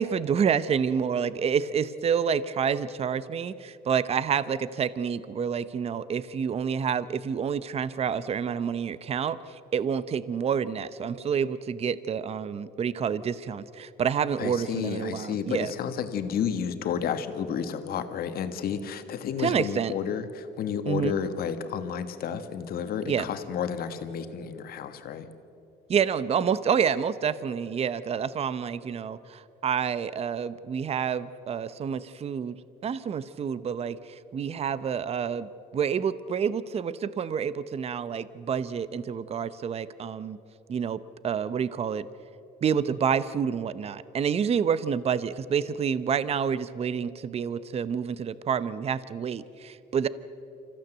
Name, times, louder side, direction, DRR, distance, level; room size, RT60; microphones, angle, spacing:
voice 1, 0.0-9.4 9.7-15.7 19.4-19.9 20.9-21.1 23.0-23.3 25.9-32.6 32.8-40.4 40.7-42.0 42.6-50.1, right 7 dB, 35° right, 16 dB, 0.7 m, -28 dB
voice 2, 14.4-25.3, left 7 dB, 65° left, 9 dB, 1.6 m, -31 dB
26.0 x 15.0 x 8.0 m, 2.8 s
cardioid pair, 110°, 17 cm